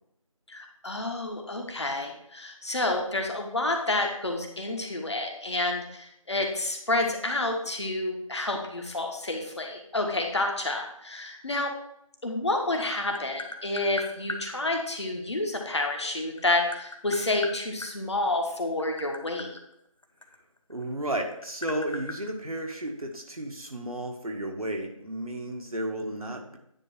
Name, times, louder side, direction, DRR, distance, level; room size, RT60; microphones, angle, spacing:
voice 1, 0.5-11.7 12.2-19.5, left 2 dB, 50° left, 2 dB, 1.5 m, -29 dB
Tap, 12.6-14.4 15.8-17.9 18.7-20.8 21.1-23.1, left 2 dB, 65° left, 1.0 m, -38 dB
voice 2, 20.7-26.6, right 1 dB, 85° right, 1 dB, 1.7 m, -33 dB
9.7 x 3.3 x 6.1 m, 0.74 s
figure-of-eight pair, 170°, 18 cm